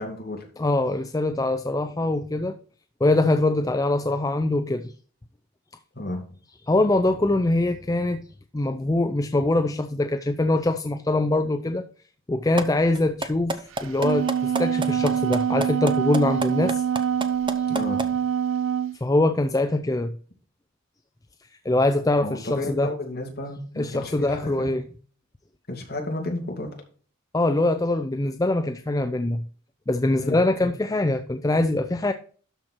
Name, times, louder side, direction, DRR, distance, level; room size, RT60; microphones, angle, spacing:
voice 1, 0.0-0.5 5.9-6.3 17.7-18.0 22.2-24.8 25.7-26.7 30.2-30.4, left 1 dB, 45° left, 1 dB, 2.5 m, -32 dB
voice 2, 0.6-2.5 3.0-4.9 6.7-8.3 8.5-11.8 12.3-16.8 19.0-20.1 21.6-22.9 23.8-24.8 27.3-29.4 29.9-32.1, left 2 dB, 15° left, 8 dB, 0.4 m, -23 dB
sound 1, 12.6-12.7 12.9-18.1, right 2 dB, 20° right, 0.7 m, -28 dB
Wind instrument woodwind instrument, 13.8-19.0, right 8 dB, 60° right, 0.3 m, -25 dB
12.0 x 4.5 x 4.4 m, 0.42 s
head